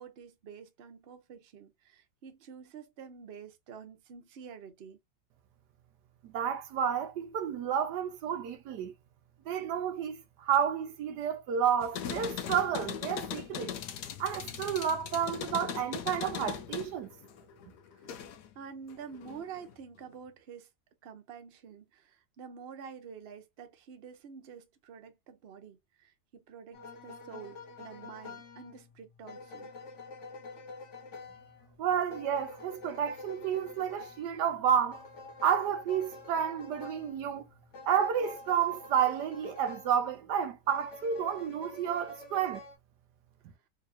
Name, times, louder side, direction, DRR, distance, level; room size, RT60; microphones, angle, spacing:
voice 1, 0.0-5.0 17.9-18.0 18.5-20.7 21.0-29.7, right 6 dB, 50° right, 0.8 m, -48 dB
voice 2, 6.2-8.9 9.5-13.7 14.2-17.1 31.8-35.0 35.4-37.4 37.9-42.6, right 8 dB, 85° right, 1.3 m, -30 dB
sound 1, 11.8-18.5 18.9-19.7, left 9 dB, 80° left, 1.2 m, -40 dB
sound 2, 26.7-40.2 40.7-42.7, left 3 dB, 55° left, 1.0 m, -48 dB
3.7 x 2.8 x 2.6 m
omnidirectional pair, 1.7 m